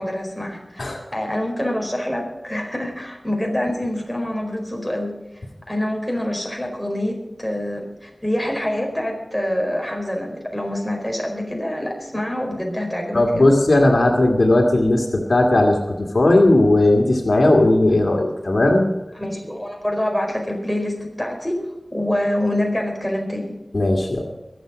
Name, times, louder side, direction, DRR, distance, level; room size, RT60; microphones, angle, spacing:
voice 1, 0.0-5.2 5.7-13.4 19.2-21.6 21.9-23.5, left 1 dB, 5° left, 1 dB, 4.6 m, -26 dB
voice 2, 13.1-18.9 23.7-24.2, left 2 dB, 75° left, 1 dB, 2.2 m, -17 dB
22.5 x 8.0 x 5.1 m, 1.1 s
wide cardioid pair, 55°, 0 cm